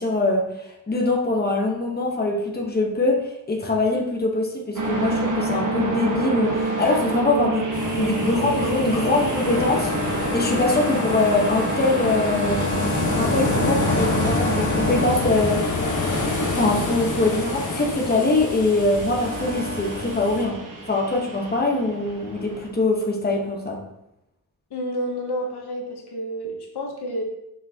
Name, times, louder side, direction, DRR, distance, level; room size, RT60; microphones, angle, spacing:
voice 1, 0.0-7.7 7.9-15.6 16.5-20.6 20.8-23.8, left 2 dB, 25° left, 0 dB, 1.2 m, -23 dB
sound 1, 4.7-22.7, right 1 dB, 50° right, 1.2 m, -28 dB
sound 2, 7.7-20.4, left 2 dB, 50° left, 1.3 m, -27 dB
voice 2, 24.7-27.2, equal, 80° left, 1 dB, 1.1 m, -29 dB
5.9 x 5.7 x 2.9 m, 0.83 s
wide cardioid pair, 120°, 38 cm